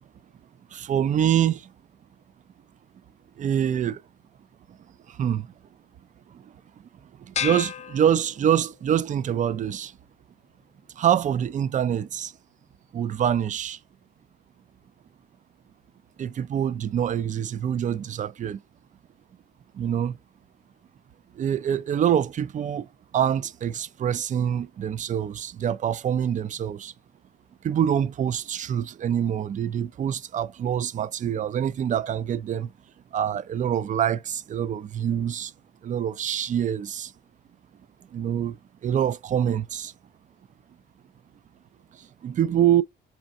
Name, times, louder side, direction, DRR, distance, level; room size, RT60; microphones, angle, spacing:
voice 1, 0.7-1.7 3.4-4.0 4.7-4.8 5.1-5.5 6.3-6.5 7.2-9.9 11.0-12.3 12.9-13.8 16.2-18.6 19.7-20.2 21.4-22.9 23.1-26.9 27.6-32.7 33.1-35.5 35.8-37.1 38.1-38.6 38.8-39.9 42.0-42.8, right 9 dB, 40° right, 0.4 m, -25 dB
sound 1, 7.3-8.8, left 9 dB, 35° left, 0.4 m, -33 dB
4.3 x 2.5 x 2.5 m
cardioid pair, 90°, 20 cm